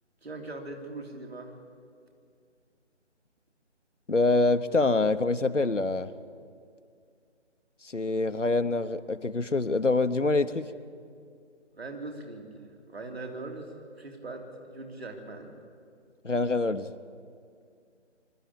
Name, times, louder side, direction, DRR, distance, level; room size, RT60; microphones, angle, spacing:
voice 1, 0.2-1.5 11.7-15.5, right 2 dB, 60° right, 2 dB, 3.3 m, -41 dB
voice 2, 4.1-6.1 7.8-10.7 16.2-16.9, left 3 dB, 90° left, 10 dB, 1.0 m, -25 dB
24.0 x 13.0 x 8.7 m, 2.2 s
figure-of-eight pair, 150°, 36 cm